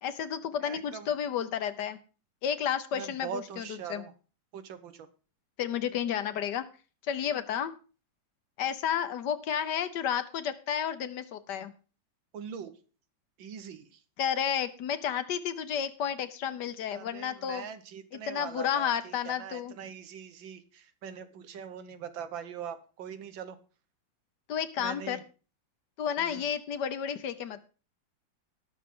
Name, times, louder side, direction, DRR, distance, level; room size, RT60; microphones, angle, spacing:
voice 1, 0.0-2.0 2.4-4.0 5.6-6.6 7.1-7.7 8.6-11.7 14.2-17.6 18.3-19.7 24.5-25.2 26.0-27.7, left 8 dB, 70° left, 11 dB, 1.4 m, -31 dB
voice 2, 0.6-1.1 2.9-4.1 4.5-5.1 12.3-12.7 13.4-14.0 16.9-23.6 24.8-25.2 26.2-26.4, right 7 dB, 90° right, 10 dB, 1.8 m, -42 dB
18.5 x 6.3 x 3.7 m, 0.36 s
omnidirectional pair, 2.0 m